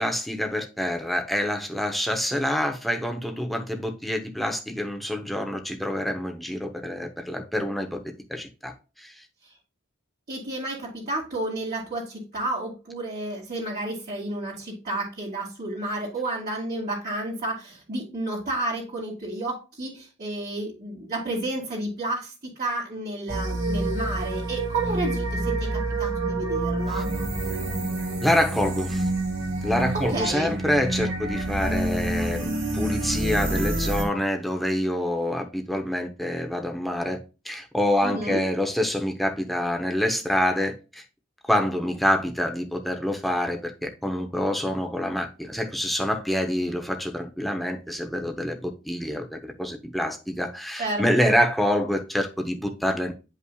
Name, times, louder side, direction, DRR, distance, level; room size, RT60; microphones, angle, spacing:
voice 1, 0.0-8.0 8.3-9.2 28.2-29.1 29.6-37.2 37.4-41.0 41.4-53.1, left 1 dB, ahead, 0.8 m, -26 dB
voice 2, 10.3-27.1 29.9-30.5 38.0-38.4 50.8-51.3, right 2 dB, 45° right, 2.5 m, -31 dB
sound 1, 23.3-34.0, right 2 dB, 65° right, 2.4 m, -27 dB
9.5 x 5.6 x 2.3 m
head